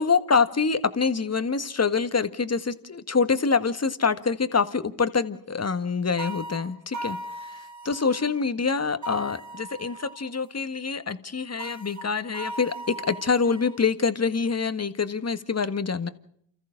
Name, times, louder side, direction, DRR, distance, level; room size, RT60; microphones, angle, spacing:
voice 1, 0.0-7.2 7.5-16.1, left 5 dB, 30° left, 11 dB, 1.7 m, -25 dB
sound 1, 6.2-8.3 9.0-10.3 11.6-13.8, right 1 dB, 35° right, 2.5 m, -38 dB
29.5 x 14.0 x 6.5 m, 0.67 s
hypercardioid pair, 45°, 50 cm